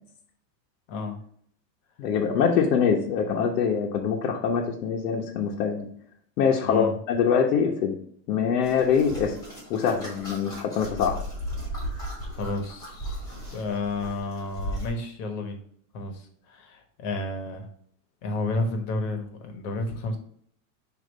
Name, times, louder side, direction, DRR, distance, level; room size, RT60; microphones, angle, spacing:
voice 1, 2.0-5.9 6.4-7.9 8.3-9.4 9.7-11.2, left 6 dB, 70° left, -1 dB, 1.1 m, -24 dB
sound 1, 8.6-14.9, equal, 10° left, 2.4 m, -36 dB
voice 2, 12.3-13.2 13.5-15.6 15.9-17.6 18.2-20.2, left 2 dB, 50° left, 5 dB, 1.3 m, -31 dB
6.6 x 2.9 x 5.3 m, 0.63 s
supercardioid pair, 165°, 49 cm